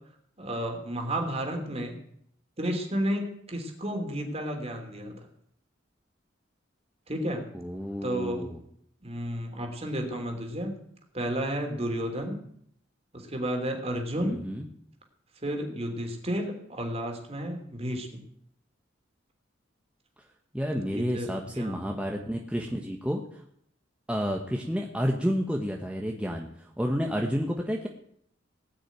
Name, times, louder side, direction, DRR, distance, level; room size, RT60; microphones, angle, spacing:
voice 1, 0.4-2.0 2.6-5.3 7.1-7.4 8.0-8.5 9.0-10.8 11.1-12.4 13.1-14.4 15.4-18.2 20.8-21.8, equal, 35° right, 4 dB, 2.9 m, -32 dB
voice 2, 7.5-8.6 14.2-14.7 20.5-23.4 24.1-27.9, equal, 5° right, 1 dB, 1.1 m, -30 dB
18.5 x 6.2 x 9.2 m, 0.69 s
head